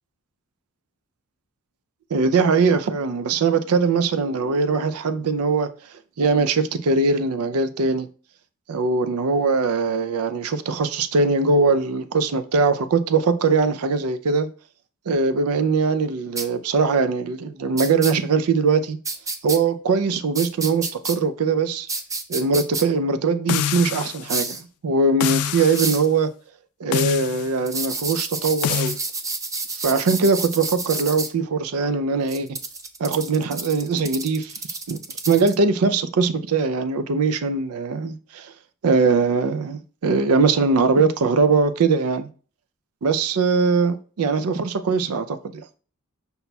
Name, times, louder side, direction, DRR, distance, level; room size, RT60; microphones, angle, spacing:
voice 1, 2.1-5.7 6.2-8.1 8.7-14.5 15.1-19.0 19.4-21.9 22.3-26.3 26.8-28.9 29.7-32.5 33.0-34.5 34.9-38.5 38.8-42.3 43.0-45.4, right 4 dB, 80° right, 0.4 m, -21 dB
sound 1, 16.4-16.5 17.8-18.1 19.0-19.6 20.3-21.2 21.9-22.8 24.3-24.6 25.7-26.1 27.7-31.3 32.3-35.6, right 3 dB, 15° right, 0.4 m, -29 dB
sound 2, 23.5-24.3 25.2-25.9 26.9-27.5 28.6-29.0, left 9 dB, 80° left, 0.3 m, -25 dB
5.5 x 2.3 x 4.0 m
head